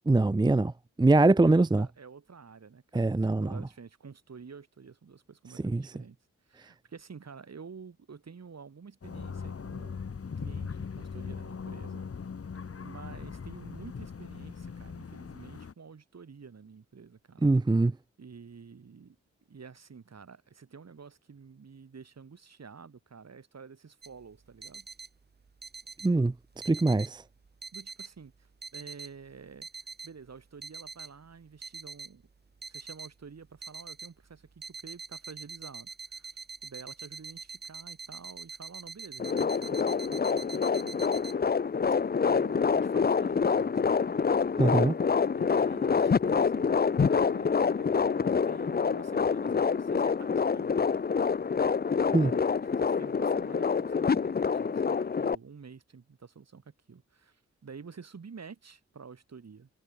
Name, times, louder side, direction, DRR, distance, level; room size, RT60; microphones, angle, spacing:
voice 1, 0.1-0.7 1.0-1.9 2.9-3.5 5.6-5.8 17.4-17.9 26.0-26.3 26.7-27.2 44.6-44.9 52.1-52.3, right 2 dB, 15° right, 0.6 m, -23 dB
voice 2, 1.4-6.2 6.5-10.0 10.4-12.2 12.8-17.5 18.2-19.2 19.5-24.9 27.7-32.2 32.7-36.3 36.6-41.2 42.3-44.2 45.0-50.7 51.9-59.7, right 5 dB, 55° right, 4.0 m, -49 dB
sound 1, 9.0-15.7, left 5 dB, 50° left, 1.7 m, -40 dB
sound 2, 24.0-41.3, right 4 dB, 35° right, 1.2 m, -45 dB
sound 3, 39.2-55.4, left 5 dB, 30° left, 0.6 m, -26 dB
cardioid pair, 55°, 31 cm